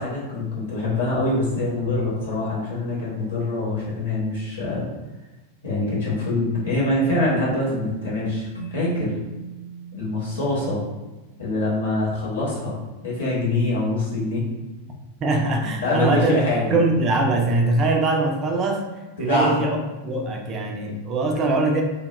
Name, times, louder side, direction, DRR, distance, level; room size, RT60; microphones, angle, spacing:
voice 1, 0.0-4.9 5.6-9.2 9.9-10.8 11.4-12.8 13.0-14.4 15.8-16.8 19.2-19.6, left 2 dB, 60° left, -5 dB, 0.9 m, -24 dB
Keyboard (musical), 8.5-11.8, right 7 dB, 80° left, 0.3 m, -40 dB
voice 2, 15.2-16.4 16.7-18.9 19.2-19.8 20.0-21.8, right 2 dB, 30° right, 2 dB, 0.3 m, -22 dB
2.1 x 2.0 x 3.1 m, 1.1 s
figure-of-eight pair, 90°, 0 cm